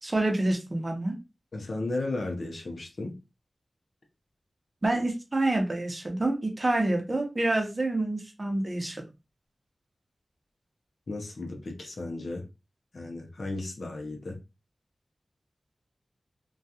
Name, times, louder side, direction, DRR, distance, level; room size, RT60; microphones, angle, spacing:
voice 1, 0.0-1.1 4.8-9.0, right 2 dB, 40° right, 0.7 m, -27 dB
voice 2, 1.5-3.1 11.1-12.4 12.9-14.4, left 2 dB, 70° left, 0.6 m, -34 dB
2.3 x 2.3 x 2.7 m
wide cardioid pair, 65°, 0 cm